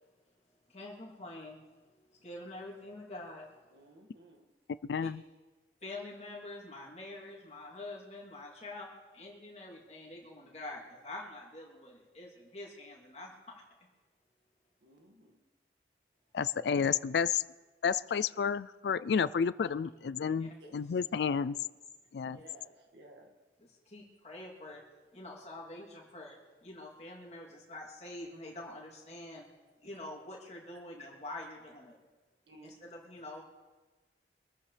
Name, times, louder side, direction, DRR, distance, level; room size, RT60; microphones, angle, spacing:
voice 1, 0.7-1.6 1.9-3.5 5.0-5.1 5.8-13.6 20.4-20.5 23.8-24.8 25.1-29.5 29.8-32.0 32.6-33.4, left 2 dB, 40° left, -3 dB, 3.0 m, -46 dB
voice 2, 3.7-4.5 14.8-15.5 20.6-21.0 22.2-23.4 32.5-32.8, right 1 dB, 90° right, 2 dB, 2.0 m, -57 dB
voice 3, 4.8-5.2 16.3-17.4 17.8-21.6 22.1-22.4, left 6 dB, 75° left, 16 dB, 0.4 m, -31 dB
25.0 x 14.0 x 3.4 m, 1.3 s
head